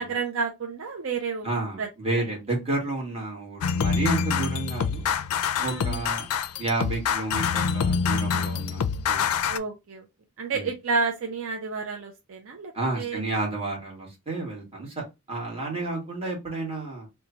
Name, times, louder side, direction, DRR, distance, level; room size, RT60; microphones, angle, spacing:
voice 1, 0.0-1.5 1.8-1.9 2.1-2.2 5.6-6.0 9.5-10.1 10.4-13.2, right 4 dB, 65° right, 0.5 m, -30 dB
voice 2, 1.4-5.1 5.6-6.3 6.6-9.2 10.5-10.7 12.7-17.1, right 2 dB, 25° right, 1.4 m, -31 dB
sound 1, 3.6-9.6, left 6 dB, 85° left, 0.4 m, -26 dB
3.1 x 2.2 x 3.8 m
head